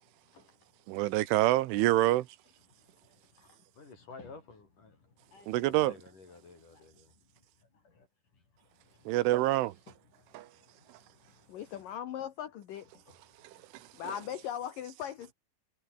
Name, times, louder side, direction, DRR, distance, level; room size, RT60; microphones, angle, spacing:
voice 1, 0.0-1.1 2.6-8.1 8.3-9.5 9.9-11.9 12.9-14.0, left 4 dB, 40° left, 7.7 m, -56 dB
voice 2, 0.9-2.3 5.5-5.9 9.1-9.7 10.4-10.5, right 16 dB, 80° right, 3.5 m, -26 dB
voice 3, 11.5-12.9 14.0-15.3, left 10 dB, 60° left, 2.5 m, -39 dB
omnidirectional pair, 5.5 m